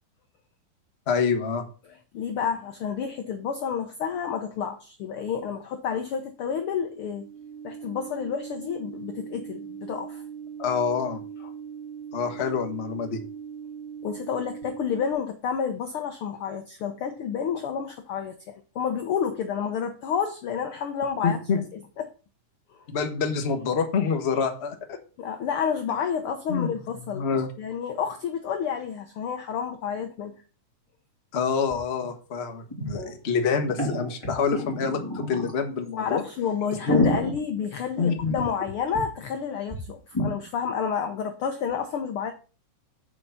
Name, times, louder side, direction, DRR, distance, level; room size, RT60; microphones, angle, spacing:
voice 1, 1.1-1.6 10.6-11.2 12.1-13.2 21.2-21.6 22.9-25.0 26.5-26.7 27.1-27.5 31.3-36.2 36.9-37.0 38.0-38.3, left 5 dB, 45° left, 0.8 m, -26 dB
voice 2, 2.1-7.3 7.6-10.2 14.0-21.4 21.7-22.1 25.2-27.3 27.6-30.4 36.0-42.3, left 7 dB, 75° left, 1.2 m, -30 dB
sound 1, 7.1-15.1, right 7 dB, 80° right, 2.3 m, -40 dB
sound 2, 31.7-31.8 32.0-32.1 32.7-33.1 33.6-35.6 36.1-36.2 36.6-38.6 38.9-39.0 39.3-39.4 39.7-39.8 40.1-40.3, equal, 10° left, 2.8 m, -28 dB
7.9 x 5.2 x 7.1 m
omnidirectional pair, 3.6 m